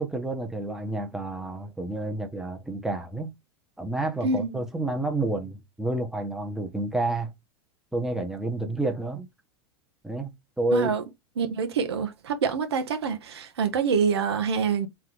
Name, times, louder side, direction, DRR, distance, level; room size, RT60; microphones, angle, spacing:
voice 1, 0.0-3.3 3.8-7.3 7.9-9.3 10.0-10.3 10.6-10.9, right 2 dB, 5° right, 1.0 m, -29 dB
voice 2, 4.2-4.6 10.7-11.0 11.4-14.9, right 5 dB, 80° right, 1.0 m, -26 dB
3.8 x 3.6 x 3.0 m
hypercardioid pair, 95°, 14 cm